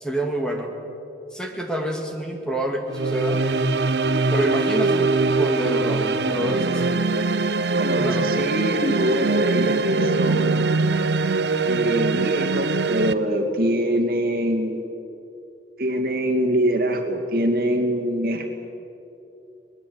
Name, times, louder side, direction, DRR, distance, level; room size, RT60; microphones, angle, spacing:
voice 1, 0.0-0.7 1.3-3.4 4.3-7.0 7.9-8.4, right 1 dB, 5° left, 1 dB, 2.1 m, -27 dB
sound 1, 2.9-13.1, right 3 dB, 80° right, 0.8 m, -22 dB
voice 2, 7.7-10.7 11.7-14.9 15.8-18.5, equal, 55° right, 2 dB, 2.5 m, -24 dB
23.5 x 20.5 x 8.2 m, 2.8 s
head